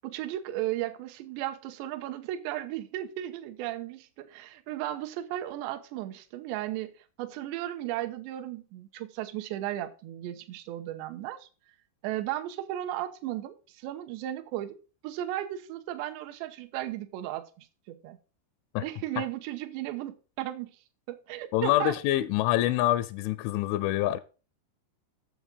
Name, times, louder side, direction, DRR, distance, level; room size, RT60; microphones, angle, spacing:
voice 1, 0.0-6.9 7.2-11.5 12.0-14.8 15.0-18.2 18.8-20.7 21.1-22.0, right 13 dB, 80° right, 2.8 m, -35 dB
voice 2, 21.5-24.2, left 15 dB, 85° left, 3.0 m, -26 dB
7.4 x 7.2 x 5.2 m
omnidirectional pair, 5.5 m